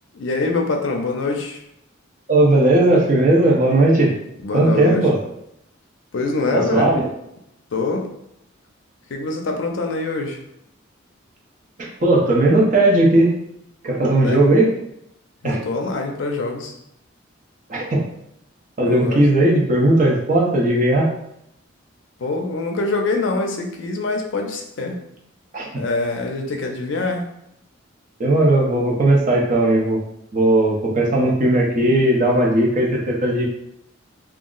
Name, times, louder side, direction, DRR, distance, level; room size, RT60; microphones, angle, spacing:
voice 1, 0.1-1.6 4.4-5.0 6.1-6.9 7.7-8.1 9.1-10.4 14.0-14.4 15.4-16.7 18.9-19.2 22.2-25.0 25.7-27.2, left 3 dB, 65° left, 3 dB, 0.4 m, -24 dB
voice 2, 2.3-4.2 4.5-5.2 6.5-7.1 11.8-13.4 13.8-14.7 15.4-15.6 17.7-18.0 18.8-21.1 25.5-25.8 28.2-30.0 30.3-33.4, right 1 dB, 40° right, -2 dB, 0.6 m, -17 dB
2.3 x 2.0 x 3.7 m, 0.78 s
head